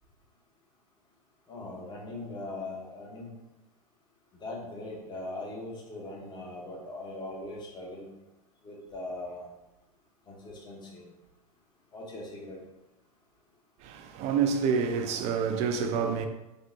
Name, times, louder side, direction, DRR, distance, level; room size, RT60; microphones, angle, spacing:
voice 1, 1.5-3.4 4.3-8.1 8.6-9.5 10.3-11.1 11.9-12.6, left 2 dB, 20° left, 1.0 m, -40 dB
voice 2, 13.8-16.3, right 6 dB, 35° right, 0.4 m, -28 dB
3.6 x 2.7 x 2.7 m
hypercardioid pair, 95°, 20 cm